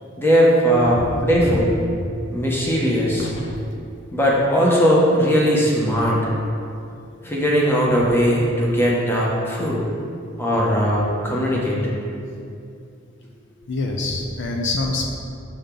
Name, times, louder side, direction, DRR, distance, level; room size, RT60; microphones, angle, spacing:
voice 1, 0.2-1.8 2.3-3.3 4.1-6.3 7.2-9.9 10.4-11.8, equal, 10° left, -4 dB, 1.0 m, -19 dB
voice 2, 0.9-1.6 3.2-3.6 13.7-15.1, left 2 dB, 60° left, 1 dB, 0.6 m, -26 dB
6.9 x 5.2 x 3.8 m, 2.5 s
head